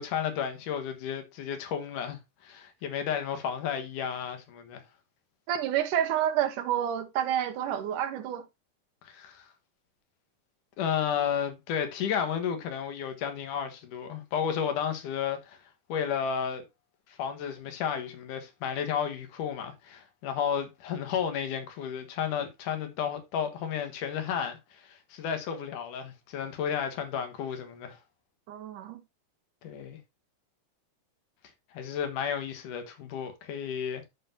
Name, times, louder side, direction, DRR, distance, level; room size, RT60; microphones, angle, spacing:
voice 1, 0.0-4.8 9.0-9.4 10.8-15.6 15.9-16.6 17.2-28.0 29.6-30.0 31.7-34.1, left 8 dB, 85° left, 3.0 m, -32 dB
voice 2, 5.5-8.5 28.5-29.0, right 10 dB, 85° right, 2.6 m, -29 dB
13.0 x 5.7 x 2.7 m
omnidirectional pair, 3.5 m